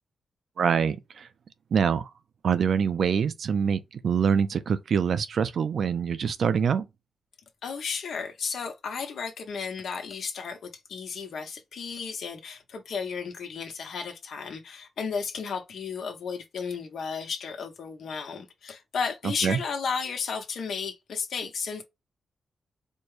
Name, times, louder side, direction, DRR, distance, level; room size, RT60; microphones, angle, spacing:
voice 1, 0.6-1.3 1.7-2.1 2.4-6.9 19.4-19.6, right 7 dB, 70° right, 0.5 m, -25 dB
voice 2, 7.6-21.8, left 5 dB, 75° left, 1.0 m, -33 dB
4.4 x 2.2 x 3.2 m
cardioid pair, 95°, 0 cm